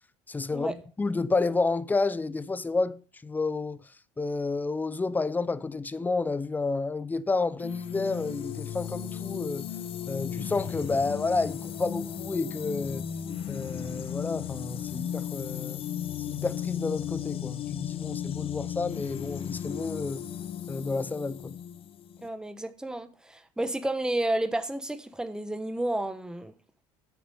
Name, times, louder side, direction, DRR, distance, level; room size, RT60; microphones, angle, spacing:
voice 1, 0.3-3.8 4.2-9.7 10.1-13.1 13.5-15.8 16.3-20.2 20.7-21.5, left 3 dB, 15° left, 0.6 m, -30 dB
sound 1, 7.6-22.3, left 9 dB, 45° left, 0.9 m, -35 dB
voice 2, 22.2-26.5, right 1 dB, 5° right, 1.0 m, -31 dB
9.5 x 6.8 x 5.4 m
supercardioid pair, 100°, 13 cm